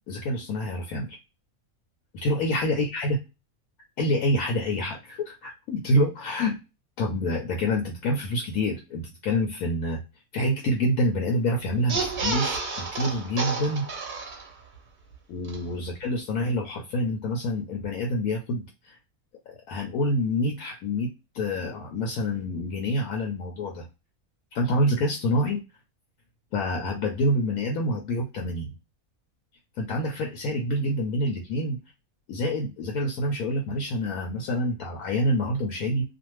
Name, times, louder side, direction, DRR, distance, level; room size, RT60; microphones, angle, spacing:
voice 1, 0.1-1.2 2.2-3.2 4.0-6.6 7.0-10.0 10.3-13.9 15.3-19.0 19.5-23.9 24.5-25.6 26.5-28.7 29.8-31.8 32.3-36.1, left 1 dB, 80° left, 1 dB, 1.1 m, -27 dB
sound 1, 11.8-14.8 15.1-15.2 15.4-15.6, right 3 dB, 50° right, 0.6 m, -30 dB
2.5 x 2.3 x 2.9 m, 0.27 s
omnidirectional pair, 1.5 m